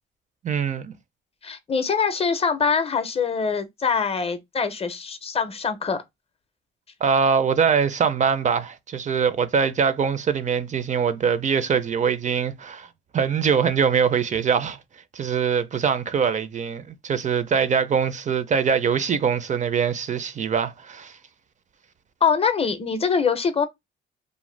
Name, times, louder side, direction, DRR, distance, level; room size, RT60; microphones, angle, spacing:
voice 1, 0.4-0.9 7.0-12.9 13.1-14.8 15.1-21.2, right 6 dB, 40° right, 0.4 m, -23 dB
voice 2, 1.4-6.0 22.2-23.7, left 6 dB, 30° left, 0.5 m, -23 dB
2.5 x 2.1 x 3.1 m
cardioid pair, 90°, 20 cm